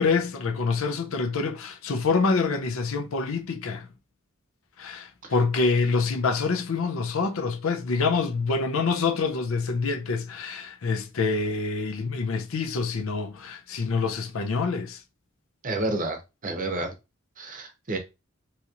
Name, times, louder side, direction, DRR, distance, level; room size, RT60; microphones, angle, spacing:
voice 1, 0.0-3.9 4.8-15.0, left 4 dB, 70° left, 0.5 m, -26 dB
voice 2, 15.6-16.2 16.4-16.9 17.4-18.0, right 2 dB, 40° right, 0.7 m, -29 dB
2.8 x 2.8 x 2.5 m
head